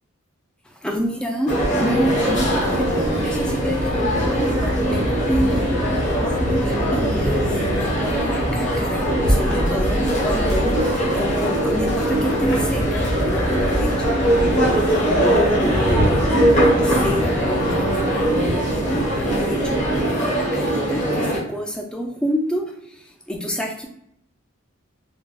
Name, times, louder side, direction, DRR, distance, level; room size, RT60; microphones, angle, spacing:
voice 1, 0.6-23.9, equal, 5° left, 1 dB, 0.3 m, -29 dB
sound 1, 1.5-21.4, right 1 dB, 35° left, 1.0 m, -21 dB
sound 2, 1.9-20.0, equal, 65° left, 0.7 m, -28 dB
3.3 x 2.2 x 2.4 m, 0.74 s
head